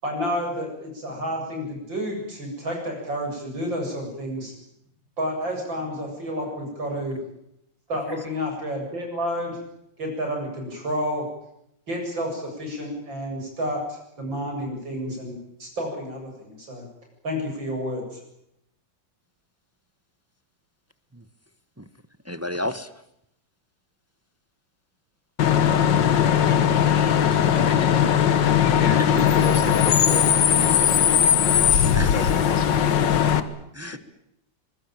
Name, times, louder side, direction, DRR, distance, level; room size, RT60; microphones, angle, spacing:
voice 1, 0.0-4.5 5.2-7.2 7.9-9.6 10.0-11.2 11.9-15.3 15.6-16.8 17.2-18.2, equal, 80° right, 1 dB, 8.7 m, -30 dB
voice 2, 22.2-22.9 31.9-32.1 33.8-34.0, left 1 dB, 10° right, 12 dB, 0.8 m, -31 dB
Bus / Idling / Screech, 25.4-33.4, left 8 dB, 70° left, 1.9 m, -19 dB
voice 3, 28.8-31.5 32.0-32.9 33.2-33.5 33.8-34.0, left 3 dB, 85° left, 6 dB, 4.0 m, -34 dB
23.5 x 22.0 x 9.1 m, 0.78 s
omnidirectional pair, 2.0 m